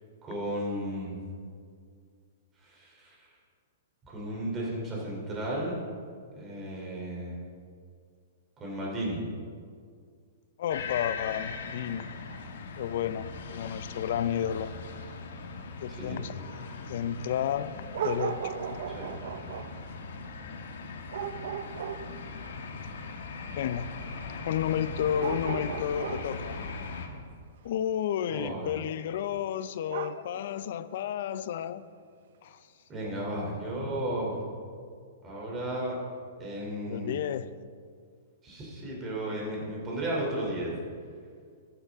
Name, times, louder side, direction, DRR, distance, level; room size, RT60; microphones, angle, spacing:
voice 1, 0.2-1.2 2.6-3.3 4.0-5.8 6.3-7.4 8.6-9.2 15.9-16.2 18.9-19.1 28.3-28.7 32.9-34.4 35.2-35.9 36.4-37.2 38.4-40.7, right 1 dB, 20° right, -3 dB, 3.1 m, -34 dB
voice 2, 10.6-12.1 12.8-14.7 15.8-16.3 16.6-18.8 23.6-24.0 24.5-26.6 27.6-31.8 32.4-32.6 36.9-37.5, left 9 dB, 55° left, 15 dB, 0.5 m, -32 dB
sound 1, 10.7-27.1, left 4 dB, 75° left, 1.4 m, -40 dB
sound 2, 14.8-14.9 17.3-17.4 17.9-19.9 21.1-22.3 24.4-24.5 25.2-26.5 28.5-29.0 29.9-30.5 31.3-31.5, right 8 dB, 60° right, 0.6 m, -36 dB
13.5 x 9.8 x 3.6 m, 2.1 s
hypercardioid pair, 155°, 0 cm